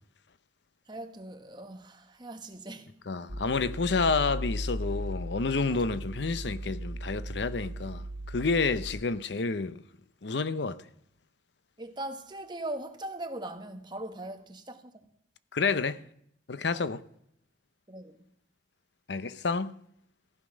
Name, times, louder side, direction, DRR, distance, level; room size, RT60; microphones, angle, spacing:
voice 1, 0.9-2.9 5.7-5.8 11.8-14.8 16.7-16.9 17.9-18.2, right 1 dB, 25° right, 1.4 m, -40 dB
voice 2, 3.1-9.8 10.2-10.8 15.5-16.0 16.5-17.0 19.1-19.7, left 4 dB, 70° left, 0.7 m, -29 dB
sound 1, 3.3-8.9, equal, 60° right, 2.2 m, -37 dB
15.0 x 11.0 x 6.3 m
head